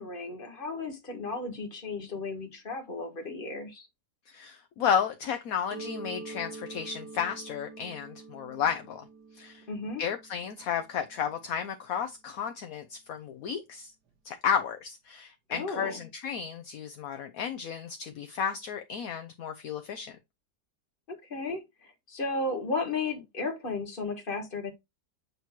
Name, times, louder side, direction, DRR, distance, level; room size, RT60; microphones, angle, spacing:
voice 1, 0.0-3.9 9.7-10.0 15.5-15.9 21.1-24.7, left 3 dB, 35° left, 1.6 m, -34 dB
voice 2, 4.3-9.0 9.3-9.7 10.0-13.9 14.2-20.2, left 7 dB, 65° left, 1.1 m, -32 dB
Mallet percussion, 5.7-11.2, right 3 dB, 80° right, 1.8 m, -45 dB
8.1 x 3.0 x 4.4 m
omnidirectional pair, 1.7 m